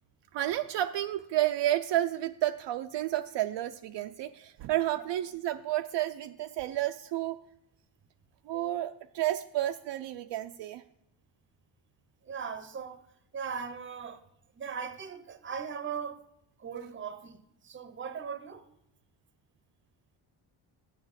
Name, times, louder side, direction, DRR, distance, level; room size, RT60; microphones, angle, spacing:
voice 1, 0.3-7.4 8.4-10.8, right 13 dB, 60° right, 0.5 m, -31 dB
voice 2, 12.2-13.1 13.3-14.2 14.5-16.2 16.6-18.7, right 6 dB, 25° right, 0.7 m, -39 dB
7.4 x 6.5 x 8.0 m
cardioid pair, 125°, 49 cm